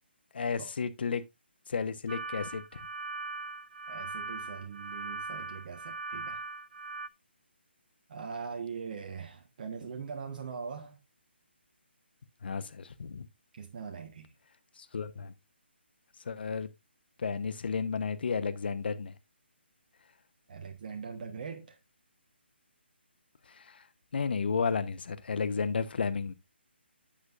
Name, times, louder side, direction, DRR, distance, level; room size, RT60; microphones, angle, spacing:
voice 1, 0.3-1.2 1.7-2.6 12.4-13.3 14.8-15.3 16.3-16.7 17.2-19.1 23.5-23.8 24.1-26.3, left 5 dB, 60° left, 1.0 m, -32 dB
sound 1, 2.1-7.1, right 3 dB, 65° right, 0.6 m, -40 dB
voice 2, 3.9-6.4 8.1-11.0 13.5-14.3 20.5-21.8, right 6 dB, 45° right, 1.3 m, -41 dB
10.0 x 7.9 x 2.5 m
figure-of-eight pair, 145°, 6 cm